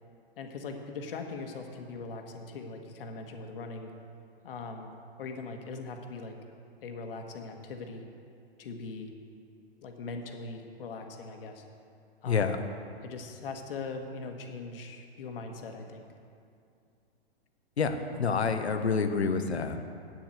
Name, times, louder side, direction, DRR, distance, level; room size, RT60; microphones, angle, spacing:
voice 1, 0.4-3.9 4.4-4.9 5.2-6.3 6.8-8.0 8.6-9.1 9.8-11.6 12.2-12.6 13.0-16.0, left 3 dB, 60° left, 4 dB, 1.5 m, -40 dB
voice 2, 12.3-12.6 17.8-19.8, left 5 dB, 90° left, 8 dB, 1.0 m, -28 dB
8.7 x 7.5 x 7.9 m, 2.4 s
hypercardioid pair, 130°, 32 cm